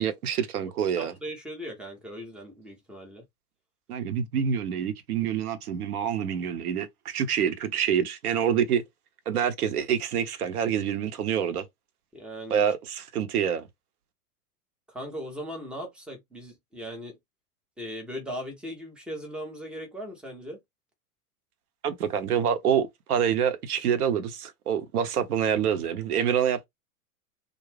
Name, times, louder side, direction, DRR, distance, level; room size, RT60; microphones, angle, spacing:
voice 1, 0.0-1.1 3.9-8.8 9.3-11.7 12.5-13.7 21.8-26.7, right 8 dB, 75° right, 0.8 m, -26 dB
voice 2, 1.0-3.2 12.1-12.6 14.9-17.2 17.8-20.6, equal, ahead, 0.3 m, -38 dB
2.5 x 2.2 x 3.1 m
hypercardioid pair, 105°, 46 cm